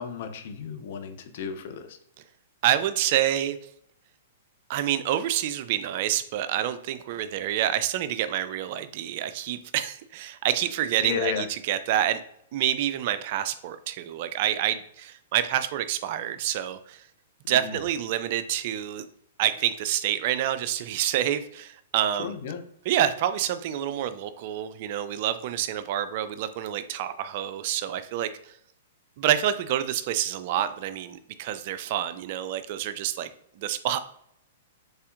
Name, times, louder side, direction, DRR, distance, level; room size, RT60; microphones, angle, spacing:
voice 1, 0.0-2.0 11.0-11.4 17.5-17.8 22.2-22.6, left 8 dB, 55° left, 7 dB, 0.6 m, -33 dB
voice 2, 2.6-3.6 4.7-12.2 12.5-17.0 17.5-19.0 19.4-22.3 22.9-28.5 29.2-33.3 33.6-34.0, right 11 dB, 50° right, 12 dB, 0.3 m, -27 dB
4.1 x 3.4 x 2.5 m, 0.71 s
hypercardioid pair, 115°, 0 cm